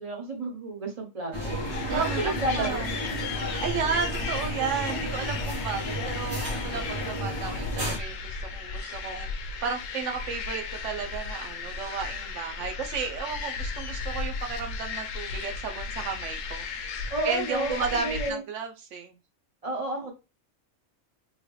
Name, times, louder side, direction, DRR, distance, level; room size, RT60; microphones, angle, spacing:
voice 1, 0.0-1.5 1.9-2.8 17.1-18.4 19.6-20.1, right 2 dB, 30° right, 1.2 m, -30 dB
sound 1, 1.3-8.0, equal, 60° right, 1.7 m, -33 dB
sound 2, 1.4-18.3, left 4 dB, 90° left, 1.0 m, -35 dB
voice 2, 1.9-3.0 3.4-16.7 17.2-19.2, right 6 dB, 75° right, 1.0 m, -33 dB
3.7 x 2.2 x 3.1 m
omnidirectional pair, 1.3 m